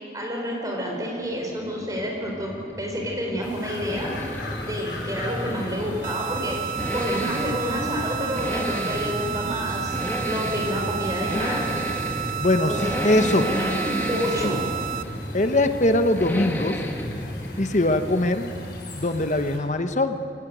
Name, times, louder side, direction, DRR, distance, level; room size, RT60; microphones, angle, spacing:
voice 1, 0.1-4.1 4.6-9.9 10.2-11.6 12.6-12.9 13.2-14.7, equal, 20° right, -1 dB, 4.9 m, -29 dB
sound 1, 1.2-19.3, equal, 10° left, 1.5 m, -32 dB
sound 2, 3.4-19.6, left 2 dB, 75° left, 6.4 m, -41 dB
sound 3, 6.0-15.0, right 11 dB, 50° right, 0.6 m, -31 dB
voice 2, 12.4-12.8 13.0-13.5 14.4-14.6 15.3-16.8 17.6-18.5 18.9-20.2, left 1 dB, 40° left, 8 dB, 1.1 m, -22 dB
23.0 x 17.0 x 9.3 m, 2.5 s
head